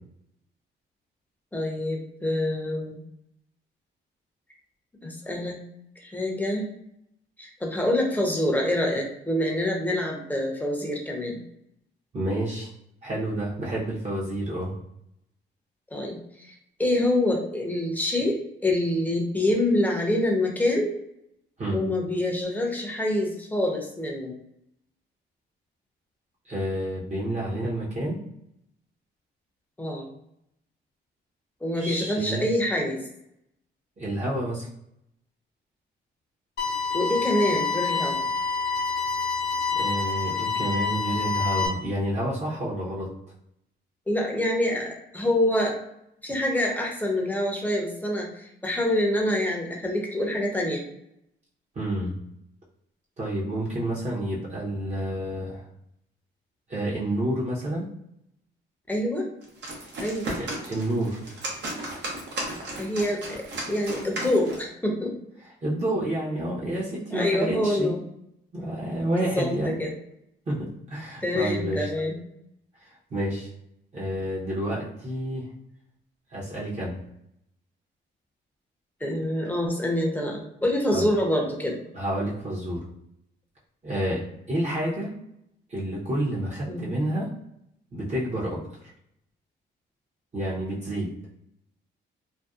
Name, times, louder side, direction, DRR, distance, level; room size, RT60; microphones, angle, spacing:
voice 1, 1.5-3.0 5.0-5.6 6.0-6.7 7.4-11.4 15.9-20.9 21.7-24.4 29.8-30.1 31.6-33.0 36.9-38.2 44.1-45.8 46.2-50.8 58.9-59.3 60.0-60.3 62.8-65.2 67.1-68.0 69.2-69.9 71.2-72.2 79.0-81.8 86.7-87.0, left 1 dB, 10° left, 0 dB, 0.7 m, -26 dB
voice 2, 12.1-12.7 13.0-14.7 21.6-21.8 26.4-28.2 31.8-32.5 34.0-34.7 39.7-43.1 51.7-52.1 53.2-55.6 56.7-57.9 60.4-61.2 65.6-67.9 68.5-69.7 70.5-71.9 73.1-73.5 73.9-75.5 76.3-77.0 80.9-81.1 81.9-82.9 83.8-84.2 84.5-85.1 85.7-87.3 87.9-88.6 90.3-91.1, right 1 dB, 35° right, -7 dB, 0.8 m, -29 dB
sound 1, 36.6-41.7, left 4 dB, 60° left, 0.7 m, -27 dB
sound 2, 59.4-64.7, right 1 dB, 65° right, 0.8 m, -35 dB
2.6 x 2.2 x 2.3 m, 0.77 s
cardioid pair, 90°, 20 cm